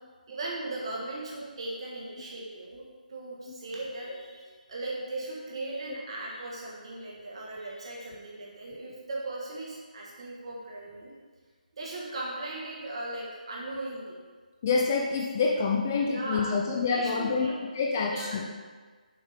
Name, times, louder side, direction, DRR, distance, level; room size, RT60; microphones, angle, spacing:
voice 1, 0.3-2.8 3.1-11.1 11.7-14.2 16.1-16.5 16.9-17.5 18.0-18.4, right 2 dB, 40° right, -4 dB, 1.4 m, -38 dB
voice 2, 14.6-17.5 17.7-18.5, left 4 dB, 20° left, -1 dB, 0.3 m, -27 dB
6.6 x 4.3 x 3.5 m, 1.5 s
hypercardioid pair, 170°, 5 cm